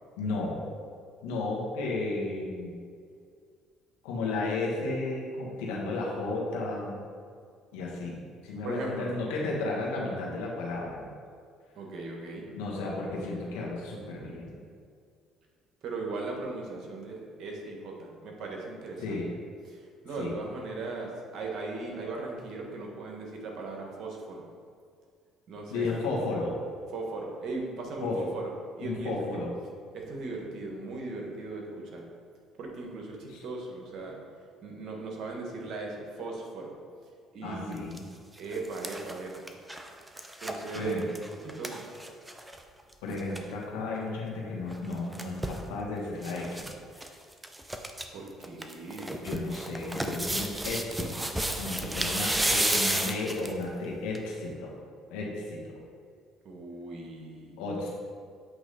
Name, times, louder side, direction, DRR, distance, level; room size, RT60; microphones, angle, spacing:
voice 1, 0.2-0.6 1.2-2.7 4.0-7.0 7.7-11.1 12.5-14.6 19.0-19.3 20.2-20.4 25.7-26.6 28.0-28.2 28.8-29.5 33.3-33.4 37.4-38.0 40.7-41.0 43.0-46.6 46.9-47.1 49.2-51.2 51.5-54.7 55.1-55.8 57.6-57.9, left 2 dB, 90° left, -3 dB, 1.2 m, -33 dB
voice 2, 8.6-9.1 11.7-12.5 15.8-19.2 19.7-24.5 25.5-25.9 26.9-28.5 28.8-29.3 29.9-32.0 32.6-34.2 34.6-36.8 37.3-37.9 38.4-39.5 40.4-41.1 41.4-41.9 48.1-49.2 56.4-57.6, right 3 dB, 60° right, 0 dB, 1.2 m, -38 dB
sound 1, 37.7-38.0 38.4-42.6 42.9-43.0 43.2-43.4 44.7-45.6 46.2-46.7 47.0-47.1 47.4-48.0 48.4-53.6 54.1-54.2, right 1 dB, 10° right, 0.6 m, -32 dB
7.9 x 3.1 x 4.1 m, 2.2 s
supercardioid pair, 80°, 0 cm